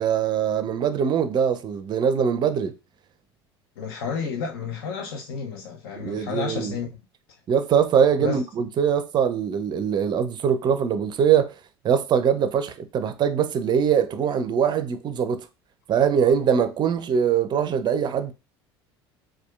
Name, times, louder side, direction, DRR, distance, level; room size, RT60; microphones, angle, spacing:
voice 1, 0.0-2.7 6.0-6.7 7.5-11.5 11.8-15.5 15.9-18.3, right 7 dB, 35° right, 0.5 m, -22 dB
voice 2, 3.8-6.9 8.2-8.4, left 5 dB, 65° left, 0.5 m, -31 dB
4.2 x 2.4 x 2.2 m
figure-of-eight pair, 65°, 14 cm